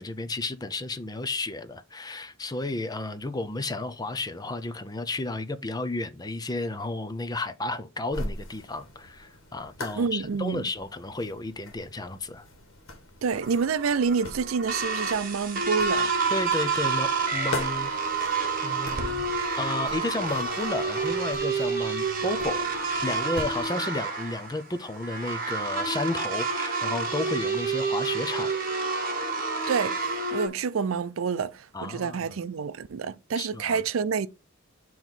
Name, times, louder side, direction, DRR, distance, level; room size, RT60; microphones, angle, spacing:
voice 1, 0.0-12.5 16.3-17.9 18.6-19.2 19.6-28.5 31.7-32.4 33.4-33.8, left 2 dB, 20° left, 0.5 m, -32 dB
sound 1, 8.1-23.7, left 2 dB, 85° left, 1.6 m, -42 dB
voice 2, 10.0-10.7 13.2-16.1 29.7-34.3, right 5 dB, 80° right, 0.5 m, -28 dB
sound 2, 13.3-30.5, right 4 dB, 45° right, 1.6 m, -29 dB
8.9 x 3.1 x 3.9 m
head